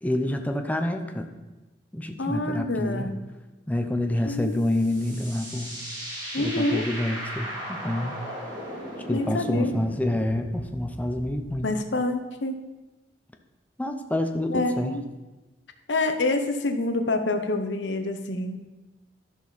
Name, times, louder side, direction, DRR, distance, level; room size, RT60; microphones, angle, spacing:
voice 1, 0.0-1.3 1.9-3.1 3.7-5.7 6.4-8.1 9.1-11.7 13.8-14.9, left 1 dB, 10° left, 5 dB, 0.7 m, -28 dB
voice 2, 2.2-3.2 4.2-4.6 6.3-6.9 9.1-9.7 11.6-12.5 14.5-15.0 15.9-18.6, left 2 dB, 70° left, 7 dB, 0.9 m, -27 dB
sound 1, 4.4-11.6, equal, 25° right, 2.5 m, -37 dB
12.5 x 6.3 x 4.1 m, 1.1 s
head